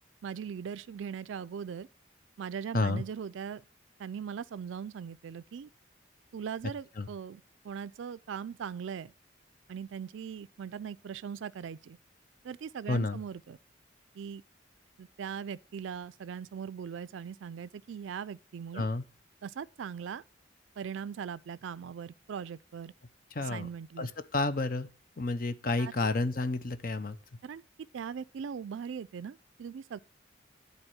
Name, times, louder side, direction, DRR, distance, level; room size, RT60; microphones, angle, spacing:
voice 1, 0.2-1.9 2.4-3.6 4.0-5.7 6.3-9.1 9.7-12.0 12.4-13.6 14.2-14.4 15.0-18.9 19.4-20.2 20.8-22.9 23.4-24.1 25.8-25.9 27.4-27.6 27.9-30.0, right 7 dB, 80° right, 0.4 m, -40 dB
voice 2, 12.9-13.2 18.7-19.0 23.3-23.7 24.0-24.9 25.2-27.2, left 2 dB, 45° left, 0.6 m, -30 dB
11.0 x 4.1 x 7.7 m
head